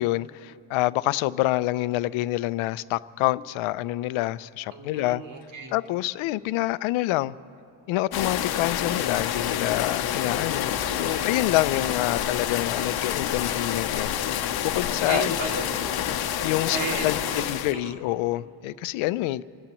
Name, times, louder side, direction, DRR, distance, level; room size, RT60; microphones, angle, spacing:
voice 1, 0.0-5.2 5.7-7.4 7.9-14.1 14.6-15.4 16.4-19.4, left 17 dB, 80° left, 0.6 m, -27 dB
voice 2, 4.7-5.7 10.8-11.3 15.1-16.0 16.7-17.4 17.7-18.0, right 4 dB, 65° right, 2.6 m, -34 dB
sound 1, 8.1-17.7, left 10 dB, 50° left, 0.8 m, -28 dB
27.5 x 16.0 x 3.0 m
cardioid pair, 110°, 47 cm